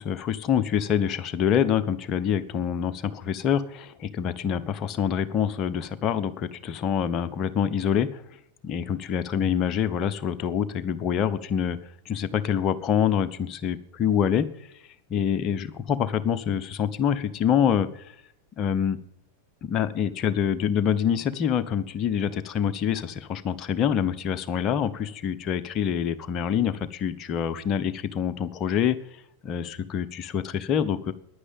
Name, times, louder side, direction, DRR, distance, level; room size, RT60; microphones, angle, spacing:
voice 1, 0.0-8.2 8.6-11.8 12.1-14.5 15.1-18.0 18.6-19.0 19.6-29.0 29.4-31.1, left 8 dB, 35° left, 11 dB, 1.0 m, -26 dB
10.5 x 9.9 x 9.0 m, 0.79 s
figure-of-eight pair, 90°, 0 cm